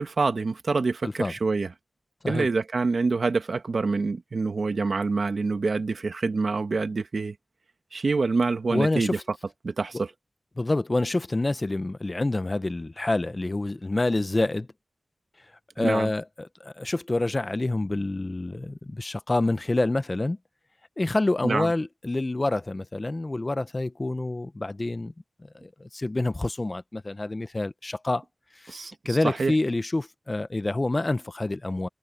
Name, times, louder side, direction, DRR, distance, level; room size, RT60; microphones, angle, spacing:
voice 1, 0.0-1.7 2.3-7.3 7.9-9.2 9.6-10.1 15.8-16.1 21.4-21.7 28.7-29.5, right 4 dB, 70° right, 1.6 m, -26 dB
voice 2, 1.0-1.3 2.2-2.5 8.7-9.2 10.6-14.7 15.8-20.4 21.0-25.1 25.4-28.2 28.5-31.9, left 2 dB, 35° left, 0.8 m, -27 dB
wide cardioid pair, 65°, 0 cm